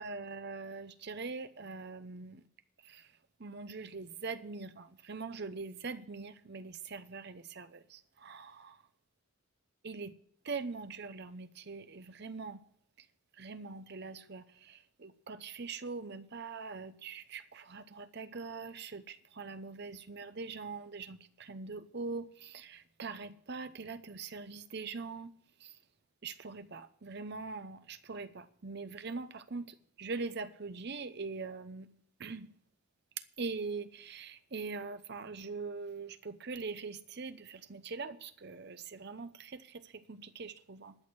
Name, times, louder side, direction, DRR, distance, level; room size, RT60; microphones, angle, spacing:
voice 1, 0.0-2.4 2.8-3.1 3.4-8.8 9.8-10.1 10.4-12.6 13.0-13.1 13.3-25.3 25.6-25.8 26.2-31.9 32.2-32.5 33.4-41.0, right 4 dB, 50° right, 0.8 m, -42 dB
11.5 x 6.5 x 9.3 m
head